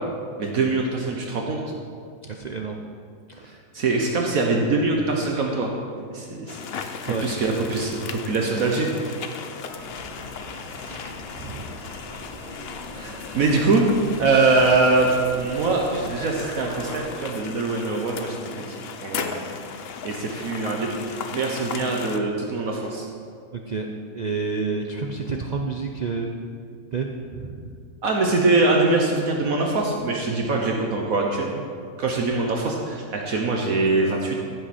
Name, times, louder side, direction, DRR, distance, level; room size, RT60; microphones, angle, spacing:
voice 1, 0.4-1.6 3.7-5.7 6.1-8.9 12.9-13.9 14.2-15.1 15.4-18.4 18.7-19.4 20.0-23.0 28.0-31.6 32.0-34.4, right 3 dB, 65° right, 0 dB, 1.4 m, -23 dB
voice 2, 2.2-2.8 3.3-3.5 7.1-7.3 10.9-11.0 11.4-11.6 23.7-23.9 24.1-26.3 26.9-27.7, right 4 dB, 80° right, 2 dB, 0.3 m, -29 dB
sound 1, 6.5-22.2, left 6 dB, 55° left, 0.7 m, -36 dB
sound 2, 9.6-17.0, equal, 25° right, 3.2 m, -40 dB
15.0 x 7.8 x 4.3 m, 2.2 s
omnidirectional pair, 1.7 m